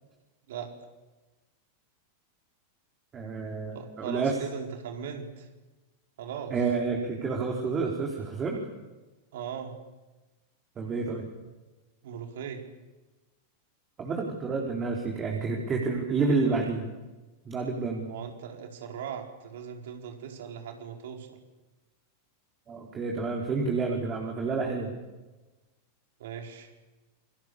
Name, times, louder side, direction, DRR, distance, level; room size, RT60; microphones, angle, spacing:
voice 1, 3.1-4.3 6.5-8.6 10.8-11.3 14.0-16.9 17.4-18.1 22.7-24.9, right 4 dB, 25° right, 0 dB, 4.6 m, -29 dB
voice 2, 3.7-5.5 6.2-6.5 9.3-9.8 12.0-12.6 18.1-21.4 26.2-26.7, right 7 dB, 55° right, 3 dB, 4.7 m, -39 dB
28.5 x 25.0 x 7.1 m, 1.2 s
figure-of-eight pair, 90°, 0 cm